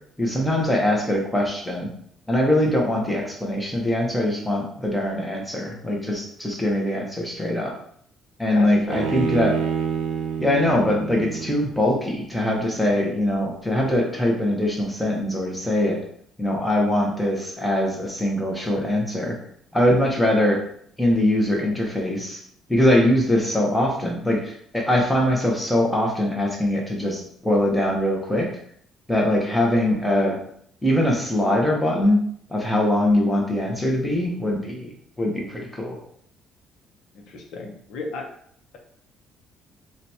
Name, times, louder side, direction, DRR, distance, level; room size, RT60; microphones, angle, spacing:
voice 1, 0.2-1.9 2.3-7.7 8.4-9.5 10.4-16.0 16.4-19.4 19.7-20.6 21.0-22.4 22.7-28.5 29.1-30.4 30.8-32.2 32.5-34.9 35.2-36.0, left 1 dB, 5° left, -1 dB, 0.7 m, -22 dB
voice 2, 8.5-9.1 37.1-38.3, left 3 dB, 65° left, 2 dB, 0.7 m, -34 dB
Bowed string instrument, 8.9-12.2, right 7 dB, 70° right, 0.5 m, -28 dB
2.8 x 2.3 x 4.0 m, 0.65 s
cardioid pair, 145°, 0 cm